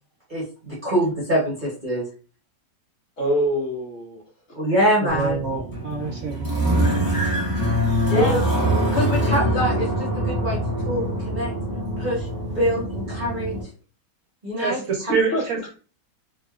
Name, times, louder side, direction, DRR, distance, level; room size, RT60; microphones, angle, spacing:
voice 1, 0.3-2.1 4.5-5.5 8.0-8.4 8.9-10.6 10.9-11.5 12.0-12.3 12.5-13.6 14.4-15.1, equal, 40° right, -6 dB, 0.8 m, -24 dB
voice 2, 3.2-4.2 8.1-8.4 15.1-15.7, equal, 50° left, -5 dB, 1.5 m, -24 dB
voice 3, 5.0-6.5 14.6-15.6, right 5 dB, 70° right, 0 dB, 0.9 m, -26 dB
sound 1, 5.1-13.6, equal, 15° left, 0.7 m, -24 dB
2.9 x 2.8 x 2.3 m, 0.38 s
omnidirectional pair, 1.8 m